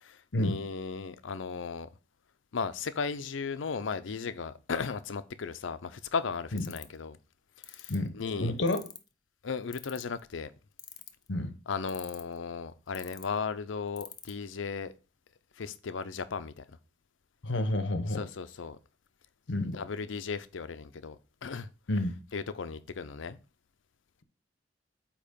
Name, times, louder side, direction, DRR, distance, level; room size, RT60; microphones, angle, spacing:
voice 1, 0.0-1.9 2.5-7.2 7.7-8.5 9.4-10.5 11.7-14.9 15.6-16.6 18.2-18.8 19.7-21.2 21.4-21.7 22.3-23.4, left 5 dB, 90° left, 0.6 m, -36 dB
sound 1, 6.6-7.0 7.6-8.0 8.7-9.1 9.7-10.2 10.8-11.3 11.9-12.4 12.9-13.2 14.0-14.3, left 9 dB, 20° left, 0.4 m, -43 dB
voice 2, 8.4-8.8 11.3-11.5 17.4-18.3 19.5-19.8 21.9-22.1, left 1 dB, 70° left, 0.9 m, -29 dB
8.5 x 3.0 x 5.1 m
head